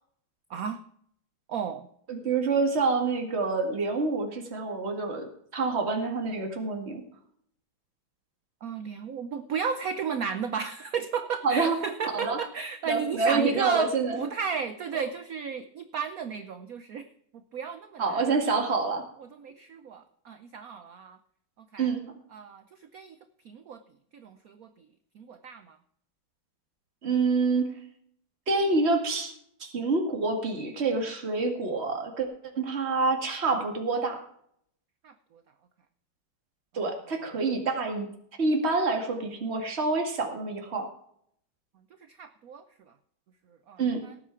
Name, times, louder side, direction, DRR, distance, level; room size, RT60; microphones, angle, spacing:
voice 1, 0.5-0.8 1.5-1.9 8.6-17.1 17.5-18.2 19.2-21.2 21.6-21.9 22.3-23.2 23.4-23.8 24.1-24.9 25.1-25.8 35.0-35.4 42.1-42.6 43.7-44.1, right 6 dB, 65° right, 10 dB, 0.9 m, -34 dB
voice 2, 2.1-7.0 11.4-11.8 12.1-12.4 12.9-14.2 18.0-19.0 21.8-22.0 27.0-27.7 28.5-29.3 29.6-32.3 32.6-34.2 36.7-38.1 38.4-40.9 43.8-44.0, right 3 dB, 30° right, 3 dB, 2.1 m, -27 dB
18.0 x 8.4 x 4.5 m, 0.68 s
omnidirectional pair, 2.3 m